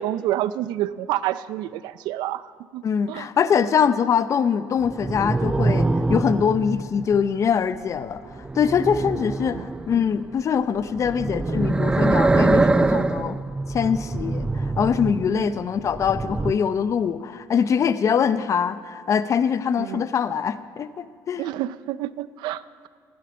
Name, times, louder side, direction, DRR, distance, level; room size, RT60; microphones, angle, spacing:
voice 1, 0.0-2.4 2.7-3.3 9.5-9.7 15.3-15.6 19.8-20.1 21.4-22.9, right 13 dB, 80° right, 16 dB, 0.5 m, -28 dB
voice 2, 2.8-8.2 8.5-13.4 13.7-21.4, left 7 dB, 45° left, 13 dB, 0.7 m, -23 dB
sound 1, 4.8-7.4 8.3-10.2 11.0-15.5 15.7-16.5, right 2 dB, 15° right, 0.4 m, -24 dB
15.5 x 11.5 x 5.3 m, 2.2 s
cardioid pair, 100°, 7 cm